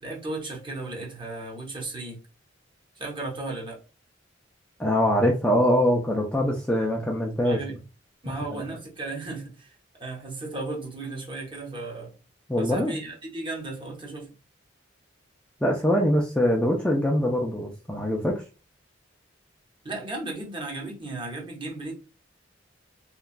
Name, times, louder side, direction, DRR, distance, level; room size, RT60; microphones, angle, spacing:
voice 1, 0.0-2.2 3.0-3.8 7.4-7.8 8.2-12.1 12.6-14.3 19.8-21.9, right 2 dB, 25° right, 0.8 m, -35 dB
voice 2, 4.8-7.6 12.5-13.0 15.6-18.4, equal, 5° left, 0.3 m, -23 dB
2.9 x 2.3 x 2.4 m
head